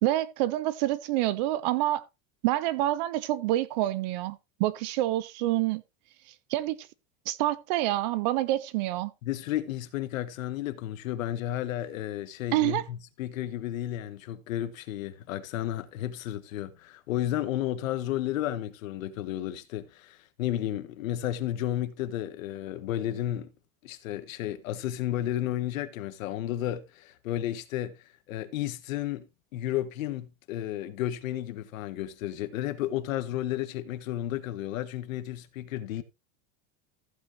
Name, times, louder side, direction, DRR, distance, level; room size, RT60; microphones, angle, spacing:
voice 1, 0.0-2.1 2.4-5.8 6.5-6.9 7.3-9.1 12.5-12.8, right 15 dB, 35° right, 0.4 m, -27 dB
voice 2, 9.2-23.5 23.8-28.0 28.3-29.3 29.5-36.0, left 12 dB, 70° left, 1.5 m, -32 dB
14.5 x 8.1 x 2.6 m
supercardioid pair, 165°, 41 cm